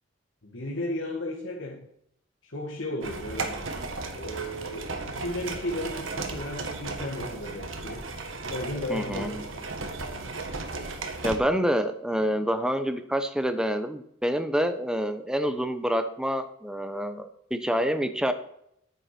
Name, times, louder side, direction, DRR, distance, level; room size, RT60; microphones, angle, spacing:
voice 1, 0.4-1.9 2.4-3.6 4.2-8.0 8.5-9.9, left 1 dB, 65° left, -2 dB, 2.0 m, -34 dB
sound 1, 3.0-11.4, right 3 dB, 75° right, 1.8 m, -35 dB
voice 2, 8.9-9.3 11.2-18.3, equal, 5° right, 8 dB, 0.9 m, -27 dB
9.8 x 9.4 x 6.0 m, 0.73 s
head